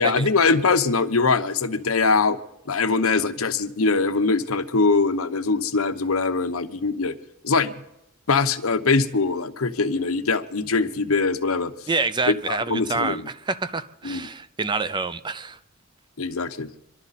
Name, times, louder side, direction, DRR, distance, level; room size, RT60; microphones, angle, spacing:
voice 1, 0.0-2.4 2.7-7.1 7.4-7.8 8.3-11.7 12.3-13.3 14.0-14.3 16.2-16.7, left 4 dB, 80° left, 0.9 m, -22 dB
voice 2, 11.9-15.6, right 3 dB, 20° right, 0.5 m, -27 dB
25.5 x 12.0 x 4.1 m
head